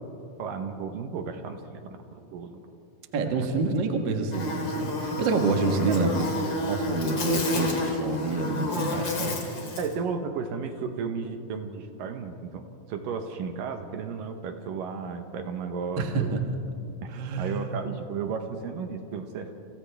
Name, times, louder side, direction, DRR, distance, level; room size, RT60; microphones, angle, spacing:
voice 1, 0.4-2.0 2.3-2.6 3.4-3.5 5.9-6.3 9.8-16.3 17.0-19.5, right 5 dB, 70° right, 6 dB, 2.5 m, -34 dB
voice 2, 3.1-6.3 6.7-9.3 16.0-16.4 17.1-17.6, right 3 dB, 55° right, 3 dB, 1.3 m, -27 dB
Buzz, 4.3-9.9, left 1 dB, 35° left, 2.5 m, -30 dB
30.0 x 27.0 x 3.5 m, 2.7 s
omnidirectional pair, 4.5 m